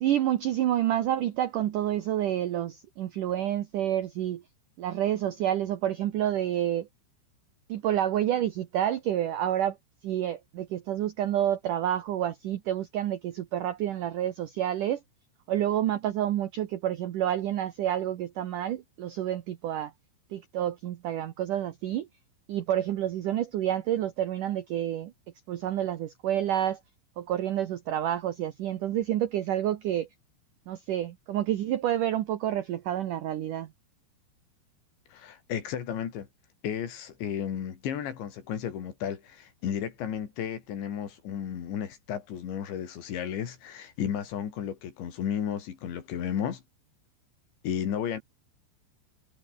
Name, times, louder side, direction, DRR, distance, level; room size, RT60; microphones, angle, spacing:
voice 1, 0.0-4.4 4.8-6.9 7.7-9.8 10.0-15.0 15.5-19.9 20.3-22.1 22.5-25.1 25.5-26.8 27.2-30.1 30.7-33.7, right 11 dB, 80° right, 1.8 m, -29 dB
voice 2, 35.1-36.3 36.6-46.6 47.6-48.2, left 9 dB, 70° left, 5.3 m, -33 dB
omnidirectional pair, 5.4 m